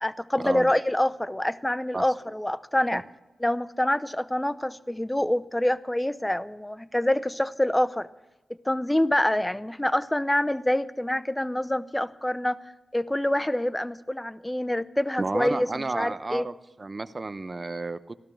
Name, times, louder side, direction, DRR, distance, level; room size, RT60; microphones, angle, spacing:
voice 1, 0.0-3.0 3.4-8.1 8.6-12.6 12.9-16.5, left 1 dB, 15° left, 15 dB, 0.8 m, -26 dB
voice 2, 15.2-18.2, right 3 dB, 40° right, 13 dB, 0.9 m, -32 dB
15.0 x 12.5 x 6.3 m, 1.0 s
cardioid pair, 40°, 0 cm